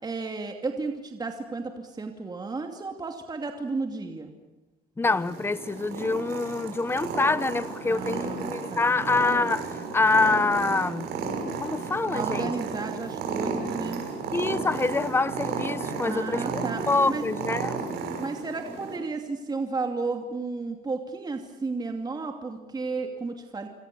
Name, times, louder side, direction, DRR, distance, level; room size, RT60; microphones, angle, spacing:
voice 1, 0.0-4.3 7.8-9.0 12.1-14.0 16.0-17.2 18.2-23.7, right 3 dB, 25° right, 2.6 m, -33 dB
voice 2, 5.0-11.1 11.6-12.5 14.3-17.7, left 3 dB, 15° left, 1.0 m, -26 dB
Purr, 5.0-19.0, right 5 dB, 75° right, 6.6 m, -33 dB
27.0 x 26.5 x 7.0 m
cardioid pair, 110°, 17 cm